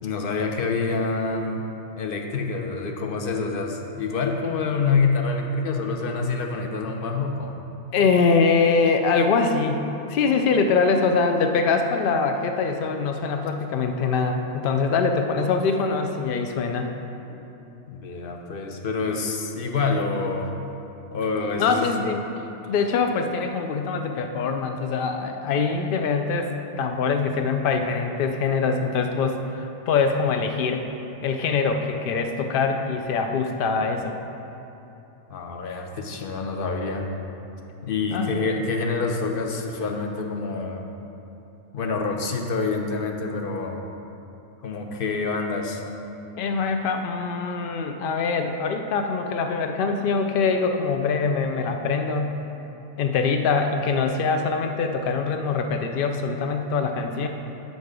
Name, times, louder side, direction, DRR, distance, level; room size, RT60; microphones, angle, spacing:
voice 1, 0.0-1.7 1.9-7.6 17.9-20.5 21.1-22.0 35.3-37.1 37.8-40.8 41.7-43.8 44.6-45.8, left 4 dB, 50° left, 3 dB, 0.7 m, -27 dB
voice 2, 7.9-16.9 21.6-22.2 22.7-30.9 31.2-34.2 38.1-38.5 46.4-52.4 53.0-57.3, left 4 dB, 85° left, 5 dB, 0.4 m, -23 dB
6.9 x 6.3 x 5.0 m, 3.0 s
omnidirectional pair, 1.5 m